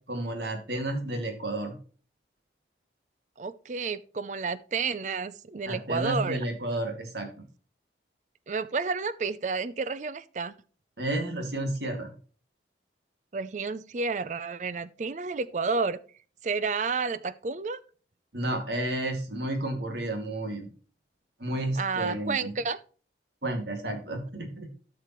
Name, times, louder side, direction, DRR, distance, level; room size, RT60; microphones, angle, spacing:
voice 1, 0.1-1.7 5.7-7.3 11.0-12.1 18.3-20.7 21.4-22.5 23.4-24.7, right 1 dB, 70° right, 2.3 m, -31 dB
voice 2, 3.4-6.4 8.5-10.5 13.3-16.0 16.4-17.8 21.8-22.8, right 4 dB, 40° right, 0.4 m, -30 dB
12.5 x 6.7 x 3.0 m
head